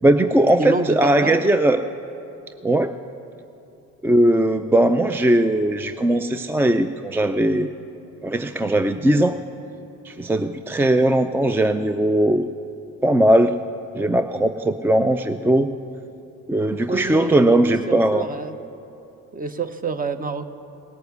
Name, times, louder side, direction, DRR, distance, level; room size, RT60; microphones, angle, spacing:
voice 1, 0.0-1.8 2.6-2.9 4.0-7.7 8.2-9.4 10.0-12.5 13.0-13.5 13.9-15.7 16.5-18.3, right 1 dB, 5° right, 9 dB, 0.3 m, -19 dB
voice 2, 0.6-1.4 16.9-18.5 19.3-20.5, right 3 dB, 25° right, 11 dB, 0.8 m, -28 dB
17.5 x 7.0 x 8.0 m, 2.8 s
supercardioid pair, 90°, 33 cm